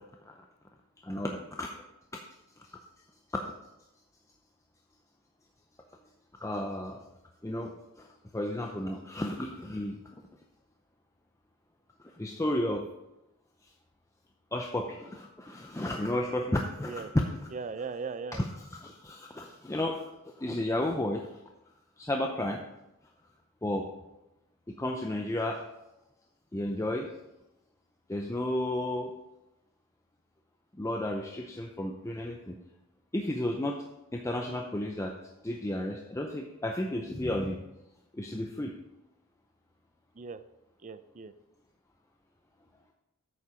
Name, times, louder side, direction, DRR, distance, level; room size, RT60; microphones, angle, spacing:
voice 1, 1.0-1.7 3.3-3.4 6.4-7.0 7.4-7.7 8.0-8.1 8.3-10.0 12.0-12.8 14.5-17.3 18.3-18.5 18.7-21.3 22.0-22.6 23.6-23.9 24.8-25.6 26.5-27.1 28.1-29.1 30.8-32.6 33.1-33.8 34.1-35.1 35.4-37.6 38.1-38.7, left 1 dB, 15° left, 2 dB, 0.5 m, -32 dB
voice 2, 17.5-18.4 40.2-40.4 40.8-41.3, right 4 dB, 35° right, 12 dB, 0.5 m, -38 dB
8.4 x 7.1 x 5.0 m, 0.94 s
head